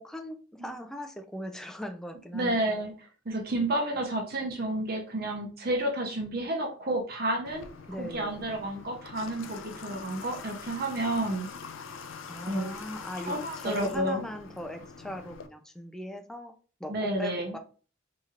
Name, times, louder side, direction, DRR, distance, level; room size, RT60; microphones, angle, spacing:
voice 1, 0.0-2.6 7.9-8.5 12.3-16.5 16.8-17.6, equal, 5° left, 4 dB, 0.4 m, -39 dB
voice 2, 2.3-2.9 3.3-7.7 8.0-11.5 12.4-12.8 13.3-14.2 16.9-17.6, right 1 dB, 50° right, 2 dB, 0.7 m, -30 dB
Water / Water tap faucet, 7.5-15.5, left 5 dB, 75° left, 0.4 m, -44 dB
4.2 x 3.0 x 2.4 m, 0.38 s
head